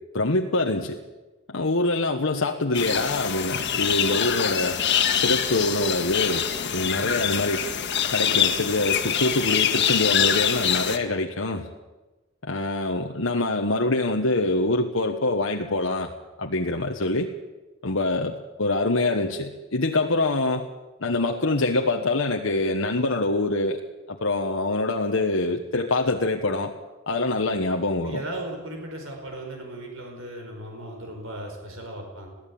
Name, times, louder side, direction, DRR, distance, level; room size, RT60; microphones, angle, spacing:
voice 1, 0.1-1.0 1.5-4.8 5.1-7.6 8.1-11.7 12.4-16.1 16.4-17.3 17.8-20.7 21.0-23.8 24.1-26.7 27.1-28.2, left 2 dB, 75° left, 2 dB, 1.3 m, -25 dB
sound 1, 2.7-11.0, left 8 dB, 60° left, 1.8 m, -24 dB
voice 2, 28.0-32.3, right 1 dB, 75° right, 2 dB, 5.1 m, -37 dB
22.0 x 15.5 x 8.7 m, 1.2 s
head